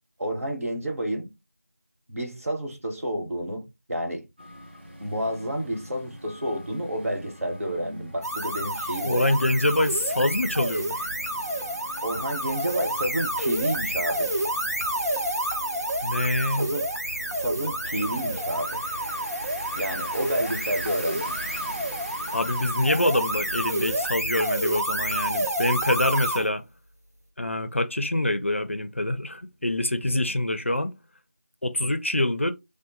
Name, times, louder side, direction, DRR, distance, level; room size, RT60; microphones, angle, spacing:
voice 1, 0.2-1.3 2.1-4.2 5.0-9.4 12.0-14.3 16.5-16.8 17.4-18.8 19.8-21.4, right 1 dB, 65° right, 1.0 m, -30 dB
sound 1, 4.4-24.1, equal, 40° right, 0.6 m, -43 dB
sound 2, 8.2-26.5, right 1 dB, 85° right, 0.8 m, -29 dB
voice 2, 9.0-11.1 16.0-16.7 22.3-26.6 27.4-30.9 31.6-32.5, left 1 dB, 50° left, 0.4 m, -25 dB
2.8 x 2.1 x 2.9 m
figure-of-eight pair, 180°, 8 cm